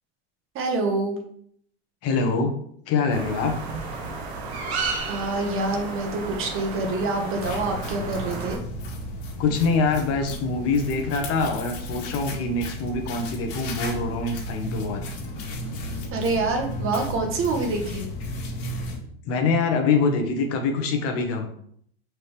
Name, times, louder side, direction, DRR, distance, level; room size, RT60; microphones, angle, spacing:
voice 1, 0.5-1.2 5.1-8.6 16.1-18.0, right 3 dB, 40° right, 2 dB, 1.7 m, -26 dB
voice 2, 2.0-2.5 2.9-3.5 9.4-15.0 19.3-21.5, left 4 dB, 50° left, 4 dB, 1.5 m, -24 dB
sound 1, 3.1-8.6, right 3 dB, 85° right, 1.4 m, -33 dB
sound 2, 7.3-19.0, left 1 dB, 65° left, 2.1 m, -34 dB
6.2 x 4.5 x 3.6 m, 0.65 s
hypercardioid pair, 100°, 31 cm